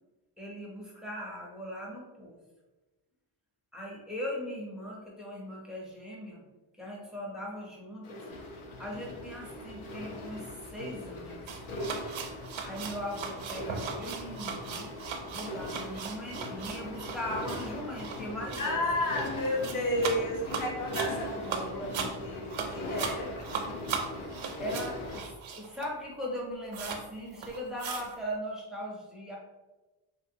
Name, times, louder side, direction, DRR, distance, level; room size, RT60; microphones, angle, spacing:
voice 1, 0.4-2.4 3.7-6.4 6.8-8.2 8.8-11.4 12.6-14.9 15.3-18.8 23.1-23.4 24.6-29.4, equal, ahead, -3 dB, 0.5 m, -39 dB
sound 1, 8.0-25.2, left 1 dB, 75° left, 0.7 m, -40 dB
sound 2, 11.5-26.0 26.3-26.4 26.7-27.0 27.3-28.2, right 6 dB, 70° right, 0.5 m, -38 dB
voice 2, 18.6-23.3, left 1 dB, 40° left, -1 dB, 0.7 m, -32 dB
3.2 x 2.5 x 2.6 m, 1.1 s
wide cardioid pair, 165°, 49 cm